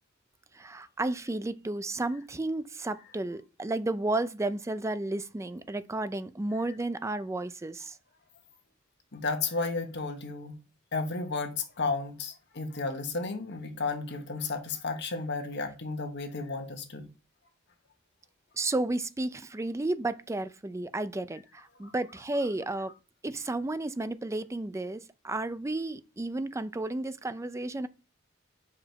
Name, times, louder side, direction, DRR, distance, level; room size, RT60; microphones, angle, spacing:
voice 1, 0.5-8.0 18.6-22.9 23.2-27.9, right 2 dB, 15° right, 0.4 m, -32 dB
voice 2, 9.1-10.6 10.9-17.1 21.8-21.9, left 4 dB, 55° left, 1.2 m, -33 dB
5.2 x 4.9 x 4.6 m
head